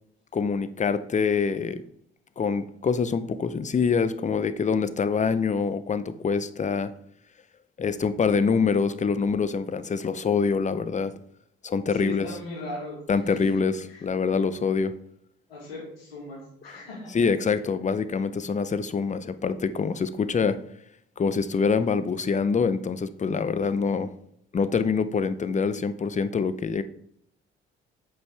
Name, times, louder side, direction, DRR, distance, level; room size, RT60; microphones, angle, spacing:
voice 1, 0.3-1.8 2.4-6.9 7.8-11.1 11.6-12.3 13.1-14.9 17.1-20.6 21.2-24.1 24.5-26.8, left 5 dB, 25° left, 13 dB, 0.6 m, -25 dB
voice 2, 11.9-13.5 13.9-14.1 15.5-17.1, left 1 dB, 90° left, -4 dB, 2.1 m, -38 dB
7.9 x 5.4 x 3.4 m, 0.68 s
hypercardioid pair, 45°, 29 cm